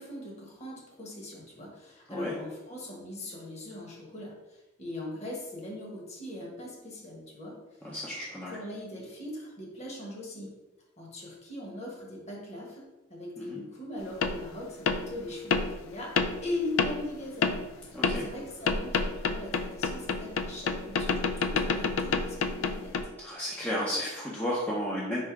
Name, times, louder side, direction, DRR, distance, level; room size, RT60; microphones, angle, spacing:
voice 1, 0.0-7.6 8.5-10.5 11.0-12.8 13.1-16.1 16.4-22.9, left 1 dB, 35° left, -2 dB, 1.1 m, -40 dB
voice 2, 7.8-8.6 13.4-13.6 17.9-18.2 23.2-25.2, equal, 10° left, -7 dB, 0.6 m, -33 dB
sound 1, 14.2-14.4 14.9-15.0 15.5-15.7 16.2-16.4 16.8-17.0 17.4-17.6 18.0-18.3 18.7-23.0, left 4 dB, 85° left, 0.3 m, -28 dB
3.5 x 2.7 x 4.5 m, 1.1 s
head